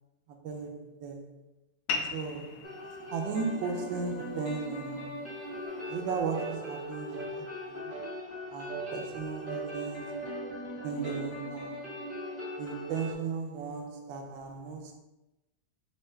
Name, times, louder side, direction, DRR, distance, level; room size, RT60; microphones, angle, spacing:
voice 1, 0.4-1.4 2.1-2.8 3.1-5.2 5.9-7.9 8.5-10.2 10.8-11.9 12.6-15.0, right 5 dB, 80° right, 1.3 m, -36 dB
sound 1, 1.9-6.9, left 4 dB, 70° left, 1.0 m, -41 dB
sound 2, 2.6-13.1, left 1 dB, 10° left, 0.9 m, -41 dB
sound 3, 5.6-5.8 6.3-6.6 7.1-7.4 7.9-8.2 8.7-8.9 9.5-10.5 11.0-11.3, right 4 dB, 60° right, 0.3 m, -40 dB
4.3 x 2.6 x 4.4 m
omnidirectional pair, 2.0 m